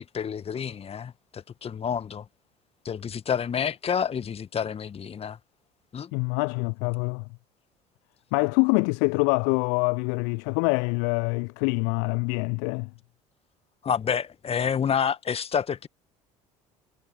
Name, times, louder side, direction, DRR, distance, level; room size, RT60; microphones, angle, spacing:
voice 1, 0.0-2.3 2.9-5.4 5.9-6.1 13.8-15.9, left 7 dB, 35° left, 1.9 m, -29 dB
voice 2, 6.1-7.2 8.3-12.9, left 38 dB, 60° left, 0.6 m, -25 dB
figure-of-eight pair, 60°, 18 cm